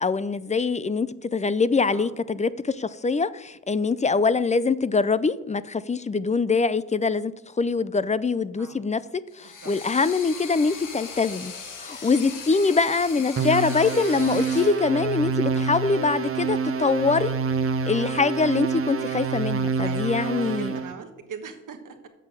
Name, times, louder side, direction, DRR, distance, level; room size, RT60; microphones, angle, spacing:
voice 1, 0.0-7.3 7.6-9.0 9.4-11.5 11.8-17.3 17.9-20.7, left 4 dB, 25° left, 17 dB, 0.4 m, -23 dB
sound 1, 9.3-14.8, left 5 dB, 75° left, 1.4 m, -39 dB
sound 2, 13.4-20.9, right 5 dB, 45° right, 0.7 m, -27 dB
voice 2, 19.8-22.1, right 6 dB, 75° right, 7 dB, 1.3 m, -41 dB
7.6 x 6.2 x 6.3 m, 0.98 s
cardioid pair, 70°, 32 cm